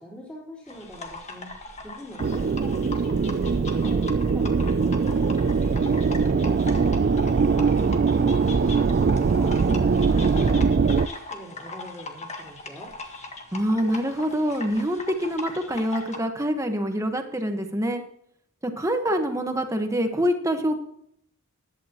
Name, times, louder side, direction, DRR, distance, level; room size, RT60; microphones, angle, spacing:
voice 1, 0.0-5.4 6.1-12.9, equal, 5° left, -7 dB, 3.7 m, -42 dB
sound 1, 0.7-16.2, left 3 dB, 30° left, 1.6 m, -39 dB
sound 2, 2.2-11.1, right 5 dB, 45° right, 0.3 m, -22 dB
voice 2, 13.5-18.0 18.6-20.8, equal, 15° right, 6 dB, 1.3 m, -25 dB
15.0 x 11.5 x 3.0 m, 0.70 s
head